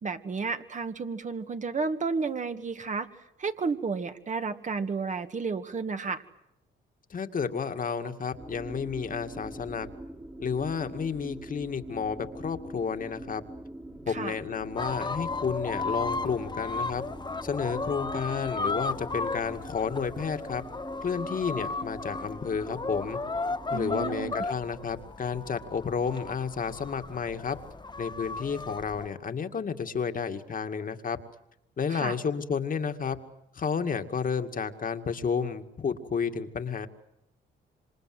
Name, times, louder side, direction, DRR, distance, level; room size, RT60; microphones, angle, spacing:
voice 1, 0.0-3.1 3.4-6.2 14.1-14.3 23.7-24.3 31.9-32.2, right 4 dB, 40° right, 8 dB, 2.1 m, -32 dB
voice 2, 7.1-9.9 10.4-13.4 14.1-17.0 17.4-20.6 21.0-23.2 23.7-27.6 28.0-31.2 31.8-33.2 33.5-36.9, left 6 dB, 45° left, 7 dB, 2.2 m, -31 dB
sound 1, 8.4-24.5, right 1 dB, 10° right, 2.3 m, -44 dB
sound 2, 14.8-29.1, left 3 dB, 20° left, 1.6 m, -35 dB
27.0 x 26.5 x 7.9 m, 0.85 s
cardioid pair, 90°, 20 cm